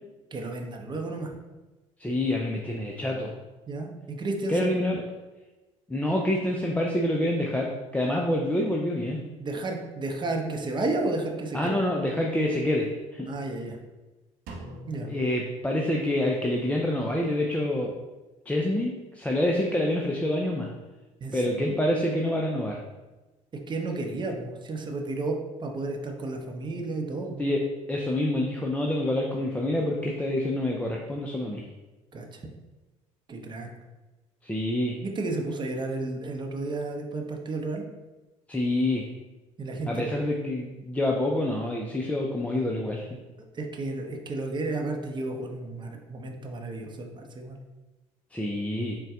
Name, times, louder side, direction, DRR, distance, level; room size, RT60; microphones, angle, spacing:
voice 1, 0.3-1.3 3.7-4.7 9.4-11.8 13.3-13.8 14.9-15.1 21.2-21.8 23.7-27.5 32.1-32.4 33.3-33.7 35.0-37.8 39.6-40.0 43.5-47.6, right 2 dB, 25° right, 2 dB, 0.7 m, -32 dB
voice 2, 2.0-3.3 4.5-5.0 5.9-9.2 11.5-13.3 15.1-17.9 18.5-20.7 21.3-22.8 27.4-27.6 27.9-31.7 34.4-35.0 38.5-39.1 39.9-43.1 48.3-49.0, left 1 dB, 10° left, -1 dB, 0.5 m, -27 dB
Drum, 14.5-16.4, right 2 dB, 65° right, 0.7 m, -44 dB
3.9 x 2.2 x 3.6 m, 1.1 s
hypercardioid pair, 60°, 17 cm